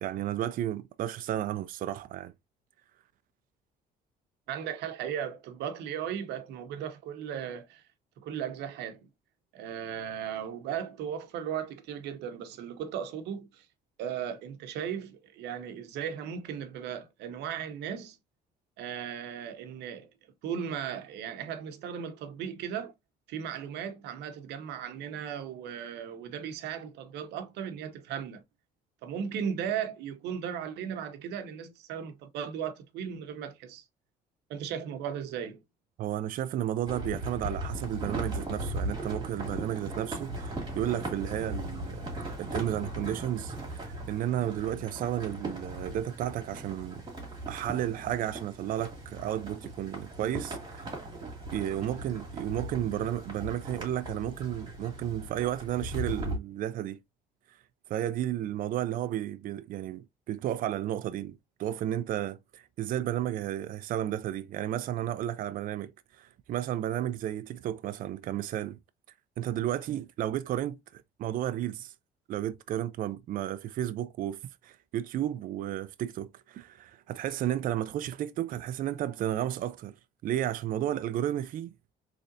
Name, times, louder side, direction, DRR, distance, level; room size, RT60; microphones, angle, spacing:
voice 1, 0.0-2.3 36.0-42.0 42.4-47.0 47.5-51.0 51.5-57.0 57.9-68.8 69.4-71.9 72.3-80.0 80.2-81.7, right 12 dB, 55° right, 0.4 m, -33 dB
voice 2, 4.5-7.8 8.2-9.0 9.5-13.7 14.0-18.2 18.8-20.1 20.4-22.9 23.3-28.4 29.0-33.8 34.5-35.6, right 8 dB, 85° right, 0.8 m, -36 dB
sound 1, 36.9-56.4, right 1 dB, 25° right, 2.4 m, -38 dB
3.8 x 3.3 x 2.5 m
cardioid pair, 110°, 17 cm